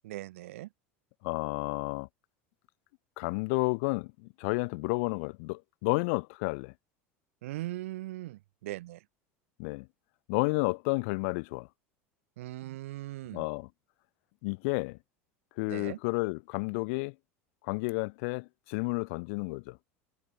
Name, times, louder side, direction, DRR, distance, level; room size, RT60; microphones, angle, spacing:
voice 1, 0.0-0.7 7.4-9.0 12.4-13.5 15.7-16.0, right 16 dB, 85° right, 2.3 m, -39 dB
voice 2, 1.2-2.1 3.2-6.7 9.6-9.9 10.3-11.7 13.3-13.7 14.4-15.0 15.6-17.1 17.6-19.8, left 30 dB, 70° left, 1.0 m, -31 dB
supercardioid pair, 105°, 7 cm